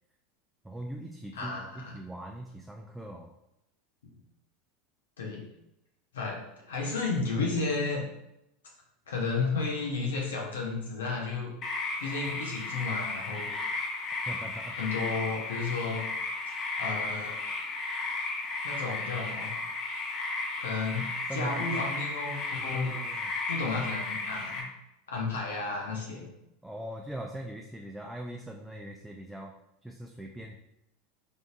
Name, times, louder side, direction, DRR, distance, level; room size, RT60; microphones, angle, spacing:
voice 1, 0.6-3.3 14.3-14.8 21.3-21.9 22.7-23.3 26.6-29.5 29.8-30.6, right 1 dB, 5° right, 1 dB, 0.3 m, -40 dB
voice 2, 1.3-2.0 5.2-5.4 6.1-8.0 9.1-11.5 12.0-13.5 14.7-16.0 16.7-17.3 18.6-19.5 20.6-22.9 23.5-24.7 25.1-26.3, left 4 dB, 90° left, -2 dB, 0.7 m, -32 dB
sound 1, 11.6-24.6, left 3 dB, 45° left, 0.8 m, -34 dB
3.6 x 2.5 x 2.6 m, 0.87 s
hypercardioid pair, 95°, 0 cm